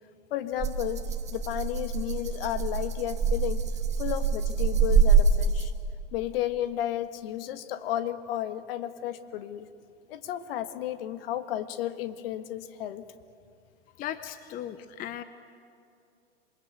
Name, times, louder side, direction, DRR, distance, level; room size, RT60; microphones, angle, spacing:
voice 1, 0.3-1.0 1.3-3.6 4.0-5.7 6.1-9.7 10.1-13.0, left 12 dB, 55° left, 11 dB, 1.6 m, -33 dB
Rattle (instrument), 0.6-5.9, right 5 dB, 20° right, 1.8 m, -25 dB
voice 2, 14.0-15.2, left 11 dB, 25° left, 12 dB, 0.8 m, -37 dB
27.0 x 21.5 x 8.2 m, 2.5 s
hypercardioid pair, 115°, 35 cm